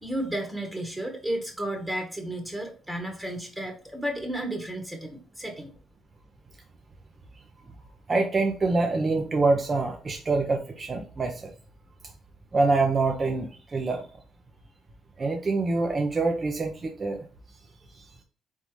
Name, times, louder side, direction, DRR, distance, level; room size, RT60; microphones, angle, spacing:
voice 1, 0.0-5.7, right 1 dB, 10° right, 3 dB, 1.2 m, -33 dB
voice 2, 8.1-11.5 12.5-14.0 15.2-17.2 17.9-18.0, right 3 dB, 35° right, 3 dB, 0.7 m, -25 dB
3.9 x 3.6 x 3.1 m, 0.40 s
cardioid pair, 90°, 0 cm